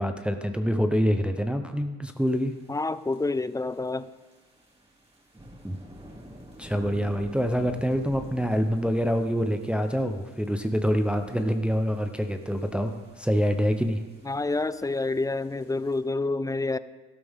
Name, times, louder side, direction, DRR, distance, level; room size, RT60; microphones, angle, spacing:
voice 1, 0.0-2.5 5.6-5.8 6.6-14.0, equal, 5° right, 6 dB, 0.8 m, -26 dB
sound 1, 2.2-16.0, right 1 dB, 20° right, 4.0 m, -49 dB
voice 2, 2.7-4.1 14.2-16.8, left 3 dB, 10° left, 15 dB, 0.3 m, -28 dB
12.5 x 12.5 x 3.6 m, 1.3 s
cardioid pair, 90°, 30 cm